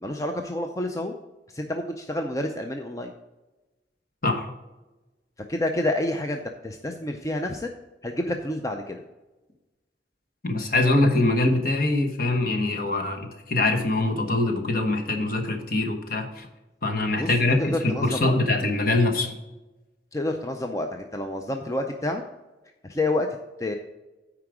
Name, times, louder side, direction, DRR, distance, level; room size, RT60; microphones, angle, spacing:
voice 1, 0.0-1.1 1.5-3.1 5.5-7.7 8.0-9.0 17.2-17.3 17.6-18.4 20.1-22.2 22.8-23.3 23.6-23.7, left 1 dB, 20° left, 4 dB, 0.4 m, -28 dB
voice 2, 10.4-16.5 16.8-19.4, left 2 dB, 50° left, 3 dB, 1.1 m, -23 dB
9.5 x 4.8 x 4.9 m, 1.1 s
head